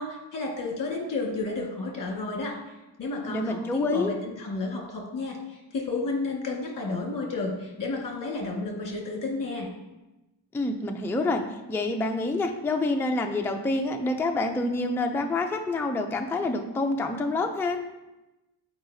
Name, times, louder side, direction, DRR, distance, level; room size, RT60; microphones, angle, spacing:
voice 1, 0.0-2.5 3.0-9.7, left 3 dB, 45° left, -1 dB, 1.6 m, -32 dB
voice 2, 3.3-4.1 10.5-11.4 11.7-17.8, left 2 dB, 5° left, 4 dB, 0.3 m, -27 dB
7.9 x 4.8 x 2.7 m, 1.0 s
wide cardioid pair, 115°, 46 cm